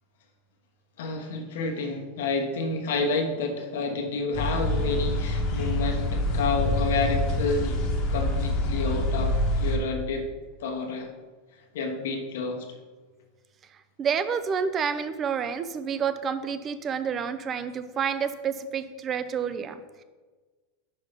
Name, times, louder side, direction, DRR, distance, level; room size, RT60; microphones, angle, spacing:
voice 1, 1.0-7.8 8.1-10.3 10.6-11.1 11.7-12.7, left 3 dB, 75° left, 3 dB, 1.2 m, -29 dB
sound 1, 4.3-9.8, left 1 dB, 35° left, 1.1 m, -26 dB
voice 2, 14.0-20.0, right 7 dB, 20° right, 11 dB, 0.4 m, -29 dB
5.6 x 5.6 x 5.2 m, 1.3 s
supercardioid pair, 170°, 0 cm